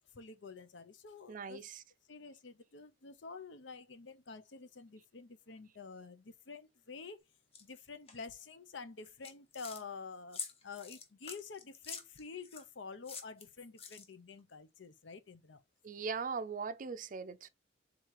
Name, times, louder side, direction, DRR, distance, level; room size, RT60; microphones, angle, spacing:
voice 1, 0.1-1.6 2.1-7.2 7.6-15.6, left 4 dB, 75° left, 0.7 m, -49 dB
voice 2, 1.3-1.8 15.8-17.5, right 5 dB, 45° right, 0.4 m, -40 dB
sound 1, 7.5-7.6 8.1-8.4 9.0-9.8 10.3-12.7 13.0-14.3, left 6 dB, 30° left, 0.8 m, -46 dB
3.8 x 2.9 x 4.7 m
head